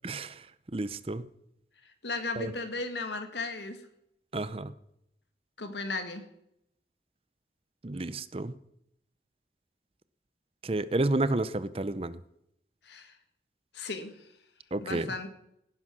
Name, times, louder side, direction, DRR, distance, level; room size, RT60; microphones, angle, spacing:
voice 1, 0.0-0.3 0.7-1.2 2.4-2.5 4.3-4.7 7.8-8.5 10.6-12.2 14.7-15.1, right 2 dB, 30° right, 16 dB, 0.7 m, -30 dB
voice 2, 2.0-3.8 5.6-6.2 12.9-13.1 13.7-14.1 14.8-15.3, left 3 dB, 75° left, 8 dB, 2.0 m, -35 dB
17.5 x 10.0 x 6.2 m, 0.78 s
head